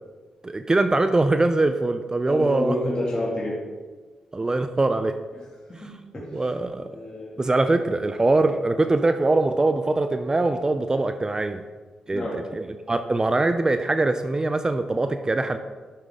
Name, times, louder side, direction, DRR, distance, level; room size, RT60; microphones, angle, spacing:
voice 1, 0.4-2.7 4.3-5.1 5.8-5.9 6.3-6.9 7.4-11.6 12.1-15.6, right 2 dB, 25° right, 9 dB, 0.5 m, -22 dB
voice 2, 2.3-3.6 5.3-5.4 5.7-6.3 6.9-7.4 12.1-12.4, left 1 dB, 30° left, -6 dB, 2.3 m, -29 dB
10.0 x 6.3 x 3.7 m, 1.4 s
supercardioid pair, 50°, 3 cm